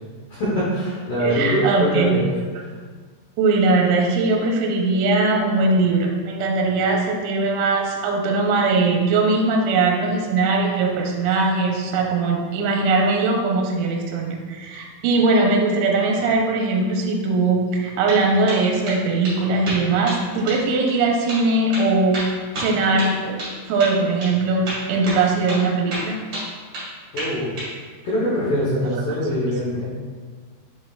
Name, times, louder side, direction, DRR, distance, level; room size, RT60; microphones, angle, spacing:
voice 1, 0.3-2.3 27.1-27.6 28.0-29.9, equal, 75° left, -9 dB, 1.9 m, -23 dB
voice 2, 1.2-2.2 3.4-22.2 22.6-26.2, right 3 dB, 85° right, 0 dB, 3.0 m, -20 dB
sound 1, 17.8-18.2 18.5-19.0 19.2-19.4 19.7-20.2 20.5-20.6 20.9-21.0 21.3-21.4 21.7-23.5 23.8-24.0 24.2-24.3 24.7-25.2 25.5-25.6 25.9-26.9 27.2-27.7, right 1 dB, 70° right, 1.1 m, -30 dB
7.6 x 5.3 x 2.4 m, 1.5 s
omnidirectional pair, 5.5 m